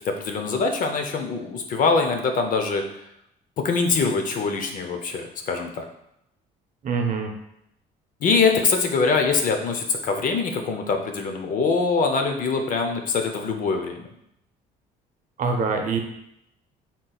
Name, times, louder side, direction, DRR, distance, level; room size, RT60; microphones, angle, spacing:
voice 1, 0.0-2.8 3.6-5.8 8.2-14.1, left 4 dB, 50° left, 4 dB, 0.6 m, -23 dB
voice 2, 6.8-7.3 15.4-16.0, right 4 dB, 50° right, 3 dB, 0.7 m, -24 dB
4.0 x 3.7 x 2.3 m, 0.78 s
cardioid pair, 110°, 17 cm